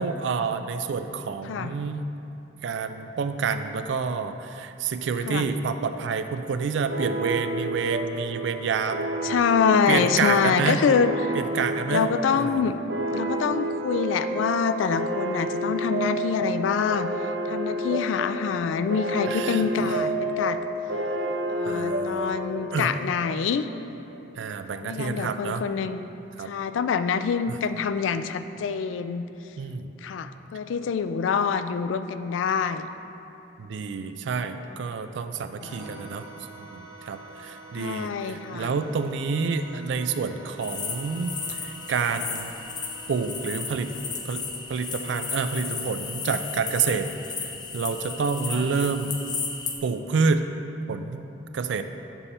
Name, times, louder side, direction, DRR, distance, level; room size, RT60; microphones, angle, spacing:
voice 1, 0.0-2.2 2.6-9.1 9.9-10.8 11.3-12.1 12.4-12.7 19.3-19.9 21.6-22.3 22.7-22.9 24.4-25.6 26.4-26.5 27.5-27.6 29.6-29.9 33.6-36.3 36.6-42.5 43.1-43.9 44.2-44.4 44.7-47.1 47.4-49.1 49.8-50.5 50.9-51.8, right 5 dB, 70° right, 9 dB, 0.4 m, -28 dB
sound 1, 6.9-24.0, right 1 dB, 90° right, 0.7 m, -30 dB
voice 2, 9.2-11.3 11.9-12.8 13.1-17.1 17.5-20.6 21.5-23.7 24.7-26.0 26.4-29.3 30.0-32.9 35.6-36.1 37.8-38.7 48.5-48.6, left 6 dB, 85° left, 11 dB, 0.3 m, -26 dB
sound 2, 35.6-45.0, right 3 dB, 20° right, 1.6 m, -46 dB
sound 3, 40.6-49.8, left 5 dB, 20° left, 0.5 m, -34 dB
7.0 x 5.6 x 4.2 m, 2.8 s
head